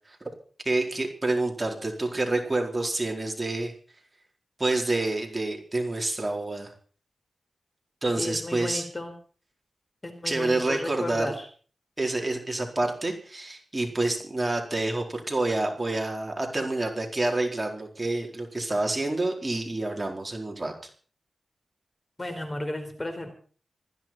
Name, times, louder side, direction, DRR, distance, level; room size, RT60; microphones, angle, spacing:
voice 1, 0.6-3.7 4.6-6.7 8.0-8.9 10.2-11.3 12.0-20.7, right 2 dB, 25° right, 2 dB, 4.4 m, -28 dB
voice 2, 8.2-9.1 10.0-11.5 22.2-23.3, left 1 dB, 25° left, 7 dB, 4.5 m, -34 dB
20.0 x 15.0 x 4.5 m, 0.42 s
wide cardioid pair, 85°, 0 cm